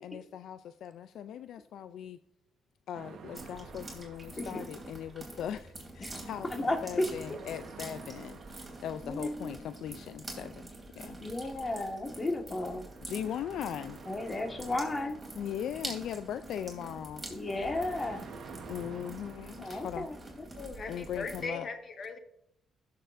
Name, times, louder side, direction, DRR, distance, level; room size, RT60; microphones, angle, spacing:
voice 1, 0.0-2.2 2.9-10.7 11.0-11.2 13.0-14.0 15.4-17.2 18.7-20.1 20.9-21.7, left 9 dB, 75° left, 0.3 m, -39 dB
sound 1, 2.9-21.2, right 5 dB, 65° right, 1.2 m, -52 dB
sound 2, 3.3-21.5, right 2 dB, 15° right, 2.9 m, -46 dB
voice 2, 6.5-7.1 9.0-9.6 11.2-12.8 14.1-15.2 17.3-18.2 19.6-20.1, left 2 dB, 30° left, 1.6 m, -33 dB
voice 3, 20.5-22.2, left 4 dB, 50° left, 1.4 m, -39 dB
15.5 x 6.6 x 2.6 m
cardioid pair, 90°, 0 cm